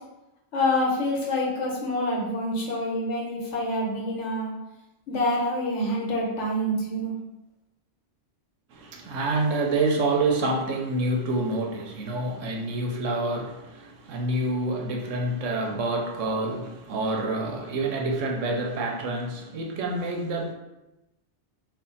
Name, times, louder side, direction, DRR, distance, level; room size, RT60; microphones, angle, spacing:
voice 1, 0.5-4.5 5.1-7.1, left 1 dB, 75° left, 1.2 m, -26 dB
voice 2, 8.7-20.5, right 2 dB, 90° right, 1.0 m, -27 dB
3.4 x 2.4 x 3.9 m
omnidirectional pair, 1.2 m